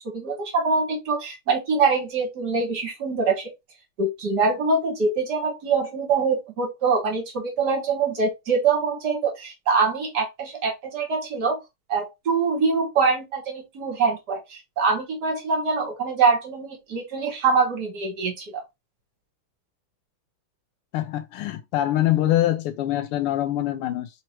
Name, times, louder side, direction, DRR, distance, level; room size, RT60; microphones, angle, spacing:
voice 1, 0.1-3.5 4.0-11.6 11.9-18.6, right 4 dB, 55° right, 1.6 m, -24 dB
voice 2, 20.9-24.1, left 13 dB, 85° left, 1.5 m, -24 dB
4.3 x 3.0 x 2.9 m
omnidirectional pair, 2.4 m